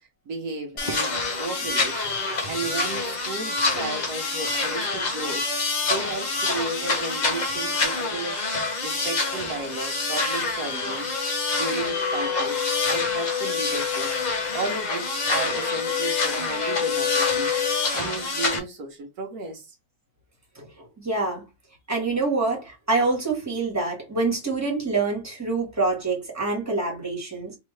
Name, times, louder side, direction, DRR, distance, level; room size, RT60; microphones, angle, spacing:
voice 1, 0.3-2.0 2.4-11.1 11.5-14.2 14.5-17.5 17.9-19.7, right 3 dB, 75° right, 1.4 m, -34 dB
sound 1, 0.8-18.6, left 3 dB, 35° left, 0.8 m, -27 dB
voice 2, 2.0-2.7 20.6-21.4 21.9-27.6, right 3 dB, 10° right, 1.7 m, -26 dB
sound 2, 8.0-17.9, left 12 dB, 65° left, 1.1 m, -31 dB
3.7 x 3.2 x 3.2 m
omnidirectional pair, 1.6 m